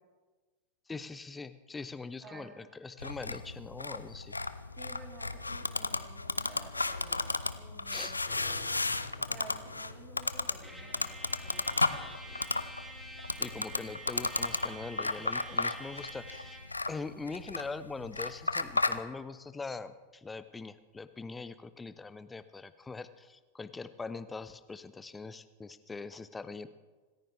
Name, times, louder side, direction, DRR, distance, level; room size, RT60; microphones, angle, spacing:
voice 1, 0.9-4.4 7.9-8.2 13.4-16.6 16.9-26.7, left 4 dB, 10° left, 14 dB, 0.7 m, -42 dB
voice 2, 2.2-2.7 4.8-8.7 9.3-12.6, right 4 dB, 30° right, 0 dB, 3.7 m, -53 dB
sound 1, 3.0-19.0, left 3 dB, 80° left, 0.6 m, -34 dB
sound 2, 8.3-20.5 20.9-21.0 21.5-21.6, left 4 dB, 65° left, 3.5 m, -56 dB
Trumpet, 10.6-16.7, right 1 dB, 5° right, 3.1 m, -48 dB
26.5 x 14.5 x 3.4 m, 1.3 s
figure-of-eight pair, 90°, 0 cm